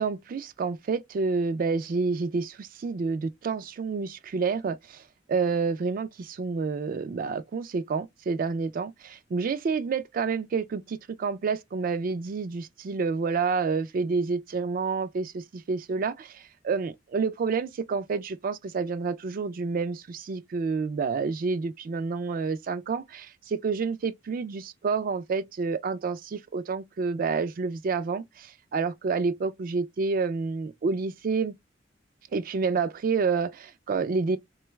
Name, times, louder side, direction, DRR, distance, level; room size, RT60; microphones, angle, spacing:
voice 1, 0.0-5.0 5.3-31.5 32.3-34.4, right 4 dB, 50° right, 0.3 m, -29 dB
3.7 x 2.3 x 3.0 m
head